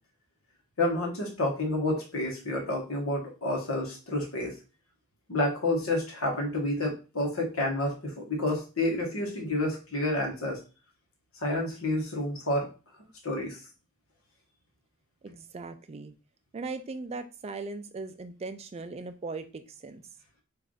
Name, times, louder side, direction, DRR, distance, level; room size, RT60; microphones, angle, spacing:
voice 1, 0.8-4.5 5.3-10.6 11.4-12.7 13.2-13.6, left 1 dB, 75° left, 0 dB, 1.2 m, -29 dB
voice 2, 15.2-16.1 16.5-20.0, right 3 dB, 30° right, 8 dB, 0.3 m, -39 dB
3.3 x 2.5 x 3.8 m, 0.33 s
head